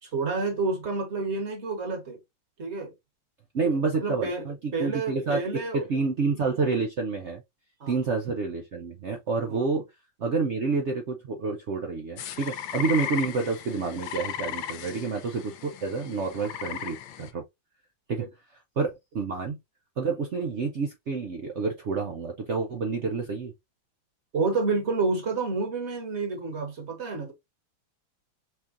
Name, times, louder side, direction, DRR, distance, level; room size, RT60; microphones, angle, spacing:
voice 1, 0.0-2.2 2.6-2.9 4.0-5.8 7.8-8.0 9.5-9.7 18.2-18.3 24.3-27.3, right 3 dB, 40° right, 1.5 m, -29 dB
voice 2, 3.5-5.4 5.7-7.4 7.9-9.9 10.2-17.4 18.1-18.2 18.8-19.6 20.0-23.5, right 4 dB, 80° right, 0.6 m, -29 dB
sound 1, 12.2-17.3, left 10 dB, 90° left, 1.4 m, -36 dB
5.5 x 3.6 x 2.5 m
omnidirectional pair, 2.1 m